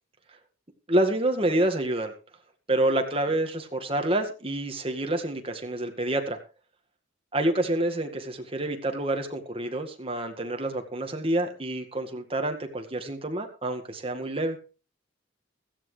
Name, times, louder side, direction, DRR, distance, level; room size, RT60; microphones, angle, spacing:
voice 1, 0.9-2.1 2.7-6.4 7.3-14.6, right 1 dB, 30° right, 4 dB, 1.9 m, -28 dB
16.0 x 14.0 x 3.3 m, 0.34 s
head